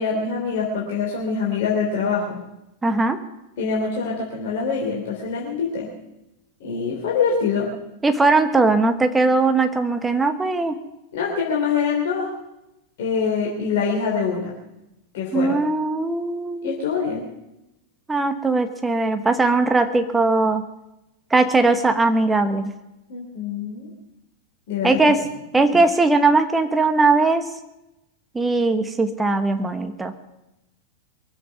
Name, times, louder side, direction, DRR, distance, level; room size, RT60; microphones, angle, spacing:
voice 1, 0.0-2.4 3.6-5.9 6.6-7.7 11.1-12.3 13.0-14.5 15.1-15.6 16.6-17.3 23.1-23.9 24.7-25.0 25.7-25.8, left 5 dB, 55° left, -2 dB, 3.2 m, -24 dB
voice 2, 2.8-3.2 8.0-10.8 15.3-16.7 18.1-20.6 21.3-22.7 24.8-25.2 25.5-27.4 28.3-30.1, right 3 dB, 10° right, 8 dB, 1.1 m, -19 dB
23.0 x 8.0 x 7.1 m, 0.91 s
figure-of-eight pair, 90°, 0 cm